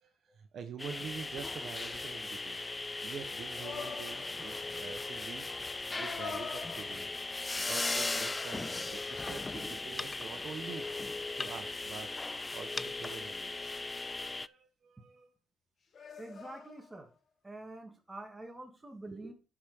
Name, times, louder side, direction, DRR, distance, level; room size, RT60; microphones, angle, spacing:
voice 1, 0.4-5.6 6.0-7.1 7.7-10.9 11.4-12.1 12.5-13.7 14.2-15.3 19.1-19.3, right 7 dB, 65° right, 6 dB, 1.1 m, -46 dB
sound 1, 0.8-14.5, left 3 dB, 20° left, 0.3 m, -38 dB
sound 2, 3.3-12.0, left 1 dB, 80° left, 2.5 m, -68 dB
sound 3, 3.5-4.6 5.8-7.4 8.3-9.3 9.9-10.1 15.9-17.1, left 5 dB, 50° left, 1.4 m, -45 dB
voice 2, 16.2-17.1 17.4-19.3, right 2 dB, 15° right, 3 dB, 2.5 m, -46 dB
10.5 x 5.1 x 5.4 m, 0.34 s
cardioid pair, 90°, 0 cm